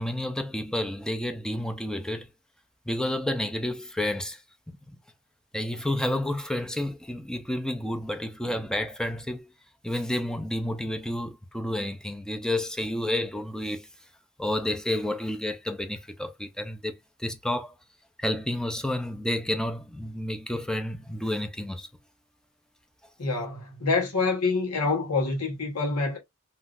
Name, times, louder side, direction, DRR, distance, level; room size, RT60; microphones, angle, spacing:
voice 1, 0.0-2.3 2.9-4.4 4.9-5.0 5.5-9.5 9.8-13.9 14.4-16.9 17.2-17.7 18.2-21.9, left 1 dB, 5° left, 0.5 m, -30 dB
voice 2, 23.2-26.2, left 3 dB, 85° left, 1.1 m, -26 dB
3.6 x 2.6 x 2.3 m
head